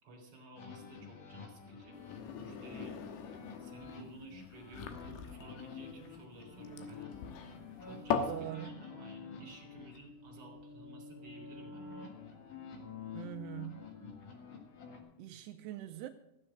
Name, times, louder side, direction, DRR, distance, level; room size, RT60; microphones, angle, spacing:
voice 1, 0.0-2.9 3.6-7.2 7.4-12.2, right 2 dB, 25° right, 0 dB, 3.8 m, -54 dB
sound 1, 0.6-15.0, left 5 dB, 55° left, 2.9 m, -49 dB
sound 2, 1.9-8.4, left 7 dB, 80° left, 3.2 m, -40 dB
voice 2, 8.3-8.8 13.1-13.9 15.2-16.1, right 14 dB, 85° right, 6 dB, 2.7 m, -43 dB
15.5 x 7.8 x 7.6 m, 0.87 s
omnidirectional pair, 4.8 m